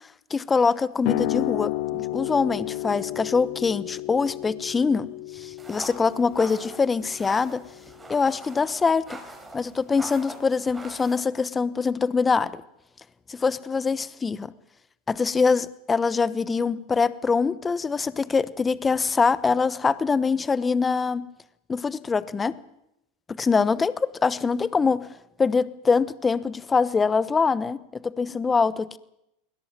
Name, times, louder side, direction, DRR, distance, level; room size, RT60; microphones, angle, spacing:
voice 1, 0.3-7.6 8.1-9.2 9.5-12.6 13.3-14.5 15.1-21.3 21.7-22.6 23.4-25.1 25.4-29.0, left 5 dB, 20° left, 17 dB, 1.1 m, -24 dB
sound 1, 1.0-8.2, left 18 dB, 60° left, 0.9 m, -32 dB
sound 2, 5.6-11.2, right 2 dB, 10° right, 5.5 m, -43 dB
21.0 x 17.5 x 9.3 m, 0.83 s
hypercardioid pair, 100°, 0 cm